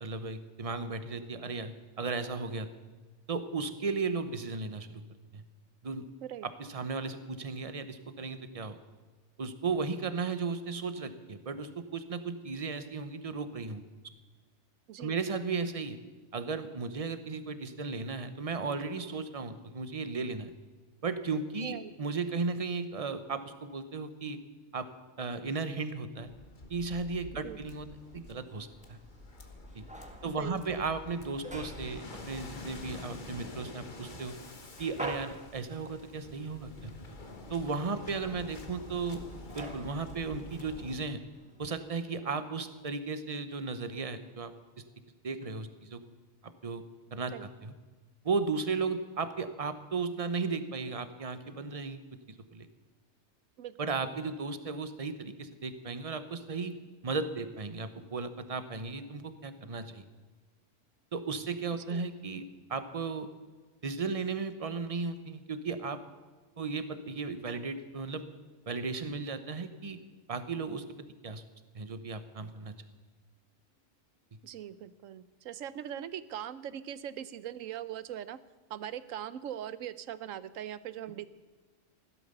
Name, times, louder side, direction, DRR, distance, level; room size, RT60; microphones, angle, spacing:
voice 1, 0.0-2.7 3.3-5.0 5.3-5.4 5.8-6.0 6.4-8.8 9.4-13.8 15.0-16.0 16.3-20.5 21.0-24.4 24.7-24.9 25.2-26.3 26.7-27.9 28.1-29.0 29.7-29.8 30.2-34.3 34.8-36.9 37.5-39.3 39.5-41.2 41.6-44.5 45.2-46.0 46.4-46.8 47.1-47.7 48.2-52.0 52.3-52.7 53.8-56.7 57.0-60.0 61.1-62.4 62.7-63.3 63.8-66.0 66.6-68.2 68.7-70.0 70.3-70.8 71.2-71.4 71.7-72.7, right 4 dB, 30° right, 11 dB, 0.9 m, -35 dB
Waves surf, 26.2-41.0, left 2 dB, 40° left, 1.4 m, -47 dB
sound 1, 27.9-41.7, right 1 dB, 5° right, 1.5 m, -49 dB
voice 2, 30.2-30.9 47.3-47.5 53.6-53.8 61.9-62.0 74.4-78.4 78.7-81.3, right 10 dB, 85° right, 15 dB, 1.1 m, -41 dB
16.0 x 12.0 x 6.7 m, 1.3 s
omnidirectional pair, 1.3 m